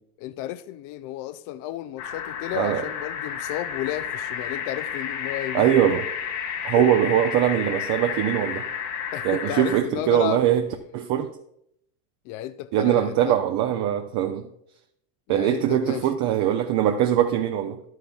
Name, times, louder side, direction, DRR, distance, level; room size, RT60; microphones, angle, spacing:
voice 1, 0.2-5.7 6.8-6.9 9.1-10.4 12.3-13.4 15.3-16.1, left 14 dB, 50° left, 12 dB, 0.4 m, -32 dB
sound 1, 2.0-9.8, left 8 dB, 85° left, 2.2 m, -31 dB
voice 2, 2.5-2.9 5.5-6.1 6.6-8.7 9.2-11.3 12.7-14.5 15.3-17.8, right 11 dB, 55° right, 5 dB, 0.7 m, -22 dB
11.0 x 9.1 x 2.4 m, 0.75 s
supercardioid pair, 100°, 45 cm